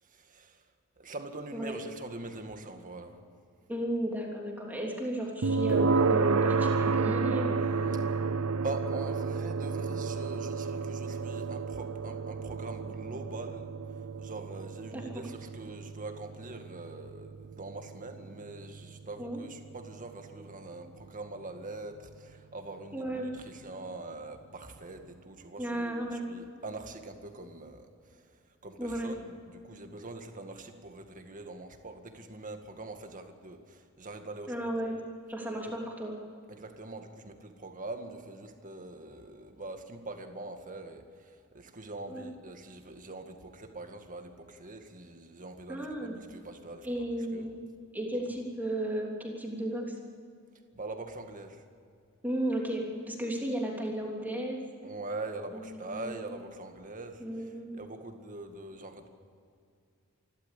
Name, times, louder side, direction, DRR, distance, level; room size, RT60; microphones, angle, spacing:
voice 1, 0.0-0.6 1.0-3.2 8.4-34.6 36.5-47.5 48.2-48.3 50.7-51.6 54.8-59.1, right 2 dB, 40° right, 5 dB, 2.0 m, -43 dB
voice 2, 3.7-7.9 14.9-15.2 19.2-19.4 22.9-23.3 25.6-26.3 28.8-29.1 34.5-35.0 35.3-36.1 42.1-42.2 45.7-46.1 46.8-47.6 47.9-49.9 52.2-54.6 55.5-56.3 57.2-57.8, right 1 dB, 10° right, -1 dB, 3.2 m, -34 dB
sound 1, 5.4-20.4, right 4 dB, 80° right, 0.7 m, -31 dB
28.0 x 12.5 x 8.5 m, 2.3 s
head